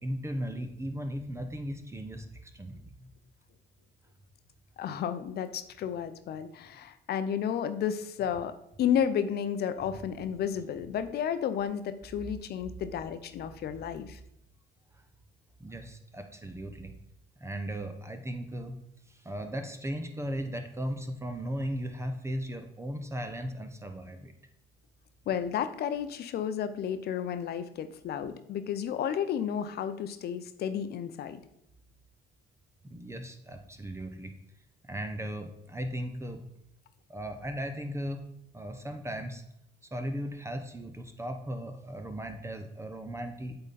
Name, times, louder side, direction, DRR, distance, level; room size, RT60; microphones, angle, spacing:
voice 1, 0.0-3.1 14.9-15.0 15.6-17.0 17.4-18.8 19.1-24.3 32.8-34.4 34.8-36.4 37.1-38.3 38.5-39.4 39.9-43.6, equal, 15° right, 6 dB, 0.9 m, -37 dB
voice 2, 4.8-14.2 25.3-31.4, left 8 dB, 55° left, 11 dB, 0.7 m, -32 dB
8.2 x 3.9 x 4.2 m, 0.78 s
supercardioid pair, 75°, 20 cm